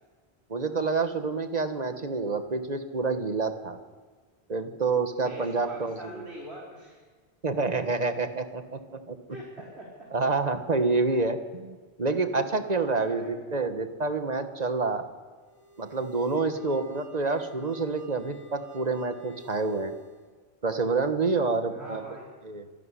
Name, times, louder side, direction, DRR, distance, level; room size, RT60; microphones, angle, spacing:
voice 1, 0.5-3.8 4.5-6.0 7.4-9.2 10.1-15.0 15.8-19.9 20.6-22.0 22.4-22.7, right 3 dB, 40° right, 8 dB, 1.6 m, -28 dB
voice 2, 5.1-7.0 9.3-10.1 11.1-11.3 13.0-13.3 16.5-16.7 21.7-22.3, right 1 dB, 85° right, -3 dB, 4.4 m, -43 dB
sound 1, 15.4-20.3, right 2 dB, 15° right, 2.3 m, -51 dB
26.5 x 12.0 x 10.0 m, 1.4 s
omnidirectional pair, 1.1 m